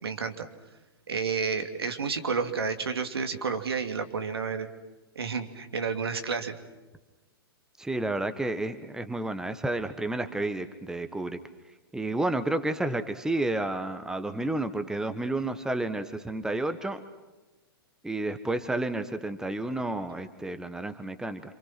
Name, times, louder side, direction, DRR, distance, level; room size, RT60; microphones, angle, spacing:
voice 1, 0.0-0.5 1.1-4.7 5.1-6.5, right 5 dB, 75° right, 6 dB, 2.8 m, -30 dB
voice 2, 7.8-11.4 11.9-17.0 18.0-21.6, right 2 dB, 5° right, 10 dB, 1.5 m, -31 dB
28.0 x 27.5 x 6.1 m, 1.1 s
figure-of-eight pair, 110°, 13 cm